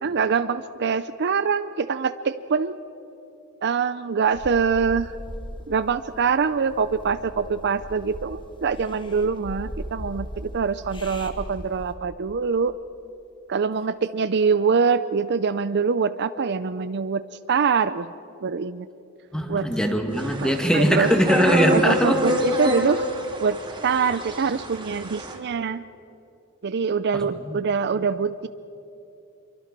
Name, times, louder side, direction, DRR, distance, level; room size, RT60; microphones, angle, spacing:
voice 1, 0.0-2.8 3.6-5.1 5.7-12.7 13.5-18.1 18.4-18.9 19.5-19.7 20.4-21.1 21.7-23.0 23.4-25.8 26.6-28.5, right 5 dB, 50° right, 13 dB, 0.5 m, -24 dB
sound 1, 4.3-11.9, equal, 25° left, 1.6 m, -39 dB
voice 2, 19.3-22.2 27.5-27.6, equal, 5° left, 5 dB, 1.9 m, -21 dB
sound 2, 20.1-25.4, equal, 20° right, 3.0 m, -28 dB
27.0 x 23.5 x 6.0 m, 2.9 s
head